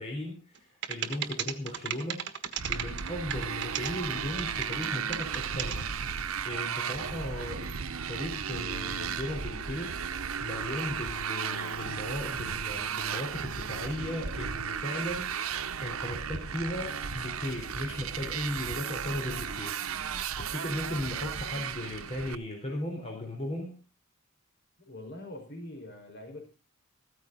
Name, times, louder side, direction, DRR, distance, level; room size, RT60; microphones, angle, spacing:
voice 1, 0.0-2.3 2.7-5.9 6.4-7.7 8.1-10.0 10.4-19.8 20.4-23.8, left 1 dB, 30° left, 4.4 m, -37 dB
sound 1, 0.6-0.7 0.8-3.9 4.4-5.8, right 9 dB, 55° right, 1.5 m, -34 dB
Motorcycle, 2.6-22.3, right 7 dB, 85° right, 0.9 m, -35 dB
voice 2, 24.8-26.5, left 1 dB, 50° left, 5.2 m, -44 dB
15.0 x 14.0 x 4.1 m
head